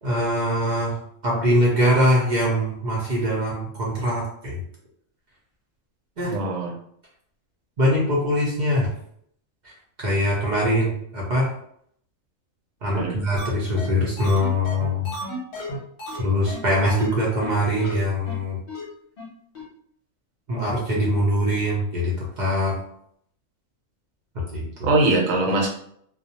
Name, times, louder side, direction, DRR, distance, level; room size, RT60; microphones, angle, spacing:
voice 1, 0.0-4.5 6.2-6.4 7.8-8.9 9.6-9.7 10.0-11.5 12.8-15.1 16.2-18.6 20.5-22.8 24.5-24.9, equal, 50° right, -4 dB, 0.6 m, -23 dB
voice 2, 6.3-6.7 12.9-13.2 24.8-25.7, right 2 dB, 75° right, 1 dB, 1.0 m, -21 dB
sound 1, 13.4-13.5 13.8-13.9 14.2-16.2 16.5-16.6 16.9-17.1 17.4-17.5 17.8-18.0 18.3-18.4 18.7-18.8 19.2-19.3 19.5-19.6, left 1 dB, 50° left, 0.8 m, -33 dB
2.3 x 2.0 x 2.7 m, 0.68 s
omnidirectional pair, 1.4 m